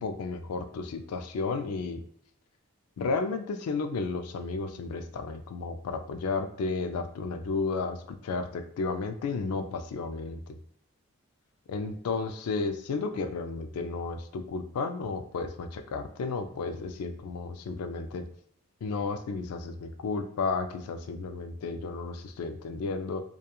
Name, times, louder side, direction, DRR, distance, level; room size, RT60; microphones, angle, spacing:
voice 1, 0.0-2.0 3.0-10.6 11.7-18.2 18.8-23.2, left 4 dB, 85° left, 8 dB, 0.3 m, -33 dB
2.8 x 2.3 x 2.2 m, 0.66 s
head